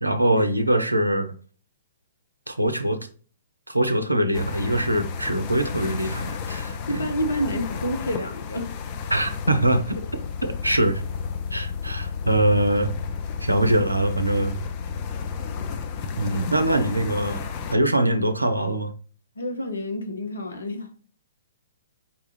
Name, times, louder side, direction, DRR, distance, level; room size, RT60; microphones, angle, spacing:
voice 1, 0.0-1.3 2.5-3.1 3.7-7.1 9.1-10.0 10.4-11.0 11.5-12.9 13.4-14.6 16.2-17.4 17.7-18.9, right 1 dB, 90° right, 0.5 m, -23 dB
sound 1, 4.3-17.7, left 6 dB, 35° left, 0.5 m, -32 dB
voice 2, 6.9-8.7 19.4-21.0, equal, 75° left, 0.9 m, -29 dB
5.2 x 2.4 x 3.1 m
figure-of-eight pair, 115°, 0 cm